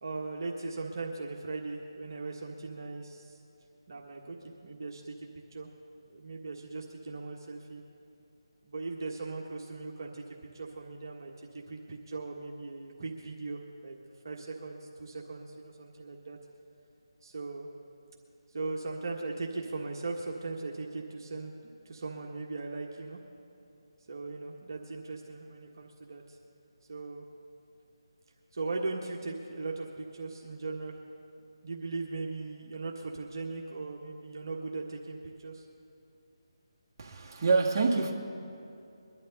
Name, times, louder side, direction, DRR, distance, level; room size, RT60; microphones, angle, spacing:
voice 1, 0.0-3.4 3.9-5.7 6.1-7.8 8.6-10.2 10.5-14.0 14.2-16.4 17.2-17.7 18.5-23.2 24.1-26.4 26.9-27.2 28.5-31.0 31.6-35.7, right 3 dB, 50° right, -1 dB, 1.5 m, -39 dB
voice 2, 37.0-38.1, right 4 dB, 30° right, -3 dB, 1.7 m, -26 dB
22.5 x 11.5 x 4.0 m, 2.6 s
figure-of-eight pair, 160°, 3 cm